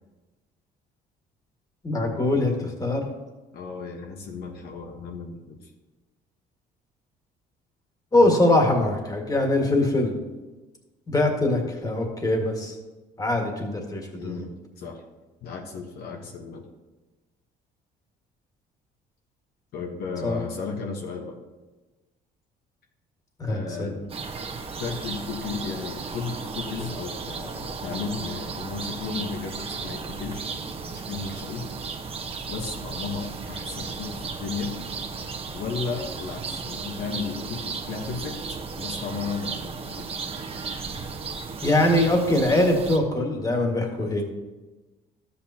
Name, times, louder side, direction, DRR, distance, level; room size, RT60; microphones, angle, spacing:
voice 1, 1.8-3.1 8.1-10.1 11.1-12.8 13.2-14.5 20.2-20.4 23.4-24.0 41.6-44.2, left 1 dB, 20° left, 2 dB, 1.9 m, -22 dB
voice 2, 3.5-5.6 14.2-15.0 15.4-16.7 19.7-21.4 23.4-24.0 24.8-30.5 30.8-31.7 32.5-34.8 35.5-40.2 44.1-44.2, left 5 dB, 70° left, 1 dB, 1.2 m, -34 dB
sound 1, 24.1-43.0, right 4 dB, 35° right, 1.1 m, -35 dB
12.5 x 8.3 x 2.9 m, 1.2 s
cardioid pair, 110°, 17 cm